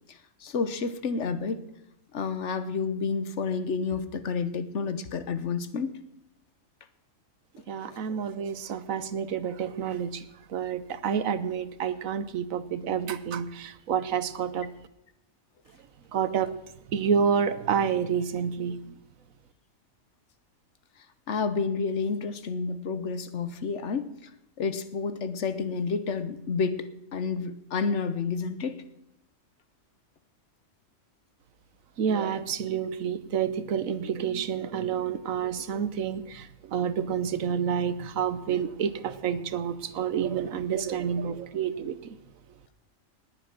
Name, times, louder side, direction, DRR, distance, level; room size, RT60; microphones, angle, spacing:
voice 1, 0.1-1.6 2.1-6.0 7.9-8.0 21.3-24.3 24.6-28.8, left 5 dB, 65° left, 13 dB, 1.3 m, -30 dB
voice 2, 7.7-10.2 10.5-14.7 16.1-16.5 16.9-18.8 32.0-42.0, right 7 dB, 85° right, 13 dB, 1.3 m, -29 dB
19.5 x 9.1 x 6.0 m, 0.87 s
omnidirectional pair, 1.4 m